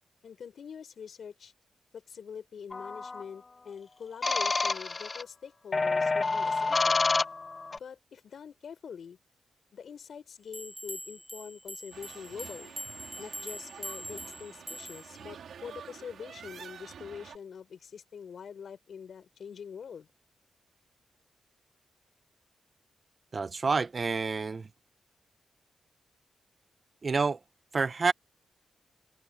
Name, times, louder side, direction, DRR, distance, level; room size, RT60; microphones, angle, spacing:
voice 1, 0.2-1.5 1.9-7.0 7.7-9.2 9.7-12.8 13.2-20.1, left 7 dB, 65° left, 4.7 m, -44 dB
sound 1, 2.7-3.2 4.2-5.2 5.7-7.8, left 3 dB, 30° left, 0.5 m, -28 dB
sound 2, 10.5-15.2, equal, ahead, 1.1 m, -43 dB
sound 3, 11.9-17.4, right 7 dB, 80° right, 2.4 m, -48 dB
voice 2, 23.3-24.7 27.0-27.4 27.7-28.1, right 4 dB, 35° right, 0.8 m, -28 dB
wide cardioid pair, 115°, 0 cm